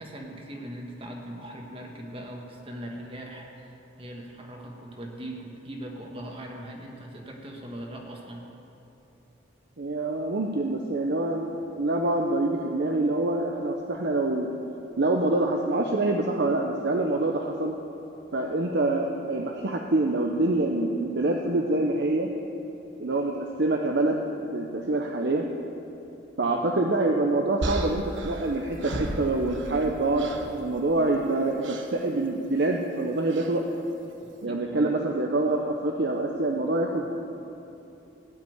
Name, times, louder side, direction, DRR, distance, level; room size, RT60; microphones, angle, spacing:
voice 1, 0.0-3.7 4.0-8.5 26.4-26.6 34.4-34.9, right 1 dB, 30° right, 0 dB, 1.6 m, -40 dB
voice 2, 9.8-14.5 15.0-17.7 18.3-22.3 23.0-24.2 24.5-25.5 26.4-33.7 34.4-37.1, right 2 dB, 55° right, 2 dB, 0.7 m, -26 dB
sound 1, 27.6-29.9 30.2-30.6 31.6-31.9 33.3-33.6, right 1 dB, 75° right, 1.2 m, -34 dB
17.0 x 5.9 x 9.4 m, 2.9 s
head